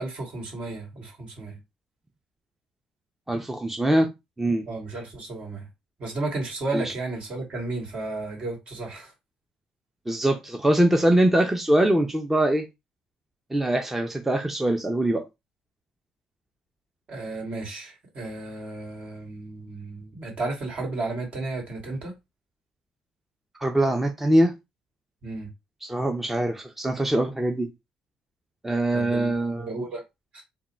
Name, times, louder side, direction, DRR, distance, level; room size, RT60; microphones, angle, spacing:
voice 1, 0.0-1.6 4.7-5.7 6.0-9.1 17.1-22.1 25.2-25.5 28.9-30.0 30.3-30.4, right 2 dB, 50° right, 2.1 m, -33 dB
voice 2, 3.3-4.1 4.4-4.6 6.7-6.8 10.1-12.6 13.5-15.2 23.6-24.5 25.8-27.7 28.6-29.7, right 1 dB, 10° right, 0.6 m, -23 dB
3.7 x 2.2 x 4.2 m
cardioid pair, 90°, 2 cm